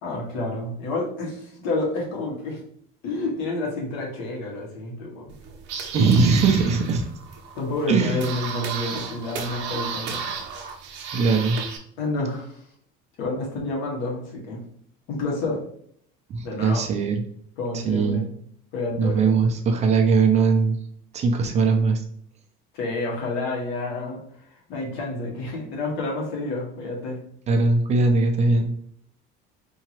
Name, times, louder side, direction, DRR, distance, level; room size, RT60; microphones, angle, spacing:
voice 1, 0.0-2.6 3.0-5.4 7.5-10.2 12.0-12.6 13.2-14.6 15.1-15.6 16.4-16.8 17.6-18.3 18.7-19.2 22.7-27.2, left 2 dB, 75° left, -2 dB, 1.6 m, -29 dB
sound 1, 5.3-11.8, right 6 dB, 60° right, 0.8 m, -33 dB
voice 2, 5.9-7.0 7.9-8.2 11.1-11.6 16.3-17.2 17.7-18.2 19.0-20.8 21.1-22.0 27.5-28.7, right 4 dB, 30° right, 4 dB, 0.6 m, -20 dB
4.6 x 2.9 x 3.0 m, 0.64 s
cardioid pair, 160°, 21 cm